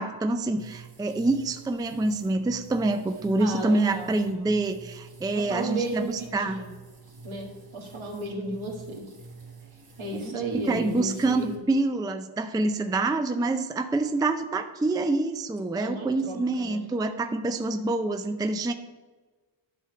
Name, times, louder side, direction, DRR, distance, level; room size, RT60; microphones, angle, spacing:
voice 1, 0.0-6.6 10.2-18.7, right 2 dB, 10° right, 8 dB, 0.4 m, -26 dB
sound 1, 0.6-11.6, right 4 dB, 50° right, 2.0 m, -48 dB
voice 2, 3.4-4.1 5.3-6.7 7.2-9.1 10.0-11.6 15.8-16.8, right 2 dB, 80° right, -1 dB, 1.8 m, -34 dB
10.5 x 3.6 x 6.8 m, 1.3 s
wide cardioid pair, 110°, 48 cm